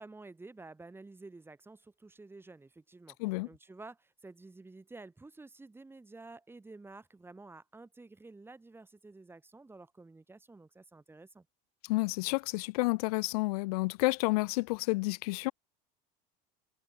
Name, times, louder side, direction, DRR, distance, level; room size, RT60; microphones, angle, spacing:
voice 1, 0.0-11.5, right 3 dB, 10° right, 2.9 m, -51 dB
voice 2, 11.8-15.5, left 24 dB, 75° left, 0.8 m, -30 dB
supercardioid pair, 105°, 19 cm